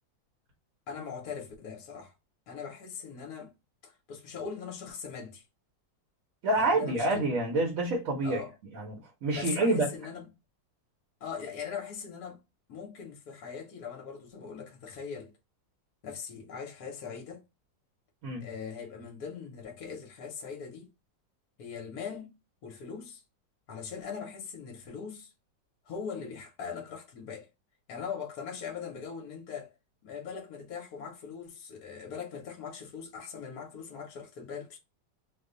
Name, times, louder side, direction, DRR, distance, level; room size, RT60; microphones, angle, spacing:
voice 1, 0.9-2.1 2.5-3.5 3.8-5.4 6.5-7.3 8.2-8.5 9.3-10.3 11.2-12.4 12.7-15.3 16.0-17.4 18.4-20.9 21.6-22.4 22.6-23.2 23.7-25.3 25.9-27.5 27.9-29.7 30.0-34.8, left 6 dB, 65° left, 1.2 m, -40 dB
voice 2, 6.4-8.4 8.7-9.9 18.2-18.4, right 2 dB, 60° right, 1.0 m, -27 dB
3.0 x 2.1 x 3.6 m
omnidirectional pair, 1.9 m